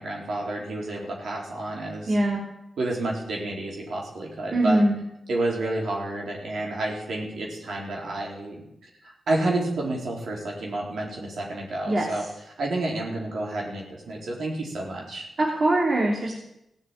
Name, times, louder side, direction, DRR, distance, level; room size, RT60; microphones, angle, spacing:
voice 1, 0.0-2.2 2.8-4.8 5.3-8.7 9.0-12.2 12.6-15.3, right 2 dB, 75° right, -1 dB, 4.0 m, -30 dB
voice 2, 2.1-2.4 4.5-4.9 11.9-12.1 15.4-16.3, right 1 dB, 50° right, -1 dB, 2.9 m, -22 dB
16.0 x 7.0 x 8.8 m, 0.84 s
supercardioid pair, 45°, 0 cm